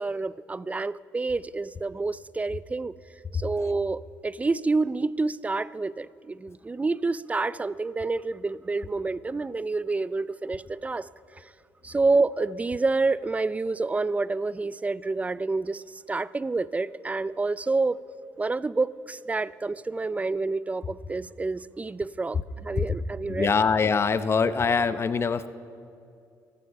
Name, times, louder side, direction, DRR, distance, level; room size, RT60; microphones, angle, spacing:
voice 1, 0.0-2.9 3.3-11.1 11.4-11.5 11.8-18.0 18.4-23.7, right 3 dB, 20° right, 19 dB, 0.3 m, -28 dB
voice 2, 23.3-25.5, left 5 dB, 35° left, 13 dB, 0.7 m, -23 dB
14.0 x 12.5 x 5.7 m, 2.4 s
cardioid pair, 80°, 7 cm